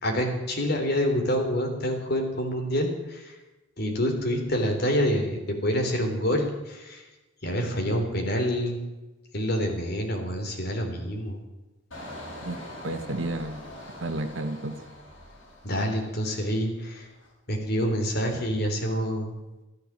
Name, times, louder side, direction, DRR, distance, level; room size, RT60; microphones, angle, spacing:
voice 1, 0.0-3.3 3.8-7.0 7.4-8.8 9.3-11.4 15.6-17.1 17.5-19.3, equal, 55° left, 2 dB, 3.5 m, -27 dB
Engine, 11.9-16.6 16.9-17.3, left 1 dB, 80° left, 6.5 m, -43 dB
voice 2, 12.4-13.6 14.0-14.8, right 1 dB, 80° right, 8 dB, 1.4 m, -32 dB
13.5 x 13.5 x 7.4 m, 1.1 s
head